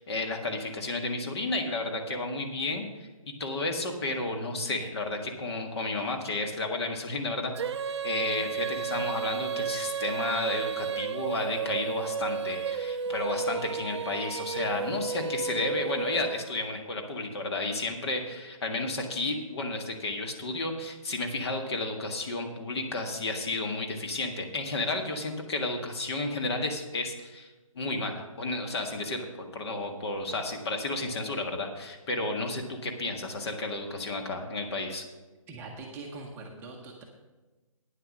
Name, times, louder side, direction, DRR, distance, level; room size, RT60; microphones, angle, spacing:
voice 1, 0.0-7.5 8.0-35.0, left 2 dB, 45° left, 4 dB, 1.7 m, -32 dB
Female singing, 7.5-16.7, right 6 dB, 50° right, 0.5 m, -33 dB
voice 2, 35.5-37.0, right 3 dB, 10° right, -1 dB, 0.8 m, -42 dB
9.6 x 7.6 x 6.2 m, 1.2 s
hypercardioid pair, 155°, 18 cm